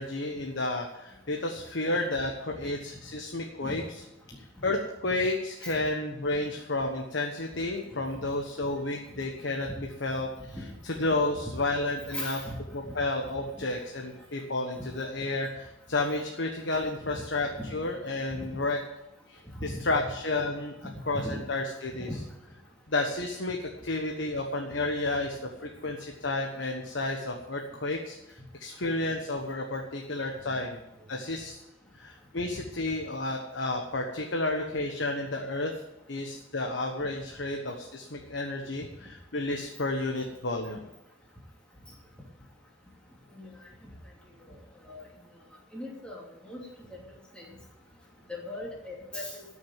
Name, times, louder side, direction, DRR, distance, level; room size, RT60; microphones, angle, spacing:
voice 1, 0.0-4.0 4.6-10.6 10.8-12.4 12.7-18.8 19.3-20.7 21.1-22.1 22.9-23.6 23.8-30.8 31.1-31.5 32.0-35.7 36.1-40.8, left 2 dB, 70° left, 2 dB, 1.3 m, -31 dB
voice 2, 12.1-12.6 18.3-18.5 19.6-19.7 21.1-21.3 22.0-22.1 43.4-43.5 44.8-45.0 45.7-46.6 47.4-47.5 48.3-49.4, left 1 dB, 5° left, -3 dB, 2.9 m, -38 dB
13.0 x 6.5 x 9.2 m, 0.98 s
head